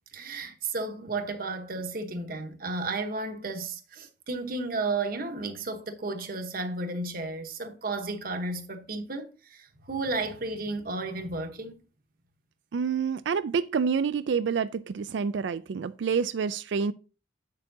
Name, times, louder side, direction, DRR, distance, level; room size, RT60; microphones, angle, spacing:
voice 1, 0.1-11.8, right 3 dB, 50° right, 1.0 m, -33 dB
voice 2, 12.7-16.9, right 6 dB, 70° right, 0.4 m, -28 dB
8.1 x 6.8 x 2.7 m
head